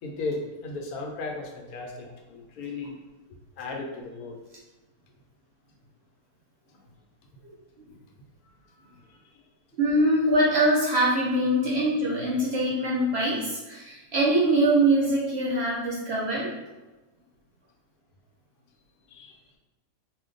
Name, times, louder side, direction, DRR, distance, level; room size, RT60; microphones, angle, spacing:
voice 1, 0.0-3.0 3.6-4.4 9.1-9.4 19.1-19.4, left 3 dB, 75° left, 1 dB, 1.0 m, -36 dB
voice 2, 9.8-16.5, right 1 dB, 60° right, -5 dB, 0.8 m, -23 dB
2.5 x 2.2 x 3.8 m, 1.1 s
omnidirectional pair, 1.6 m